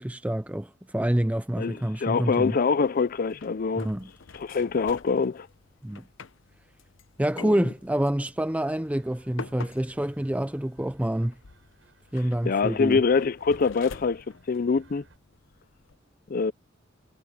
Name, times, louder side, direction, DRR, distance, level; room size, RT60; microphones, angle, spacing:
voice 1, 0.0-2.6 3.8-4.1 5.8-6.1 7.2-11.4 12.1-13.0, right 1 dB, 5° right, 0.5 m, -27 dB
voice 2, 1.6-3.9 4.3-5.5 7.4-7.5 12.5-15.0 16.3-16.5, left 5 dB, 45° left, 0.5 m, -25 dB
sound 1, 2.3-16.0, left 4 dB, 75° left, 0.8 m, -48 dB
sound 2, 8.8-15.2, right 1 dB, 70° right, 6.9 m, -58 dB
head